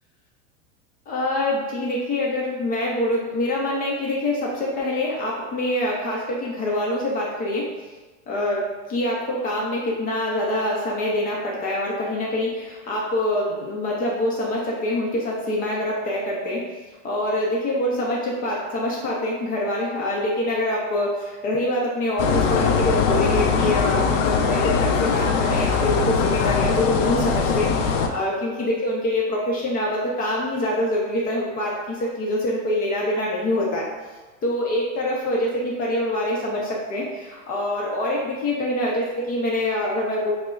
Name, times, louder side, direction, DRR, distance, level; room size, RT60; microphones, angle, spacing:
voice 1, 1.1-7.7 8.3-16.6 17.0-33.9 34.4-40.3, left 1 dB, 25° left, -4 dB, 0.5 m, -25 dB
sound 1, 22.2-28.1, left 5 dB, 85° left, 0.6 m, -21 dB
6.1 x 2.1 x 2.3 m, 1.3 s
supercardioid pair, 150°, 38 cm